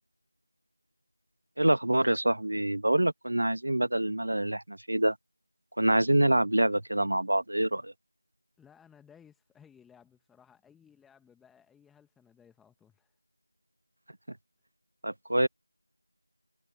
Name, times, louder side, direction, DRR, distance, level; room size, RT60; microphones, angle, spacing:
voice 1, 1.6-5.1 5.8-7.9 15.0-15.5, right 1 dB, 50° right, 1.3 m, -26 dB
voice 2, 8.6-13.1, left 7 dB, ahead, 1.2 m, -59 dB
figure-of-eight pair, 175°, 0 cm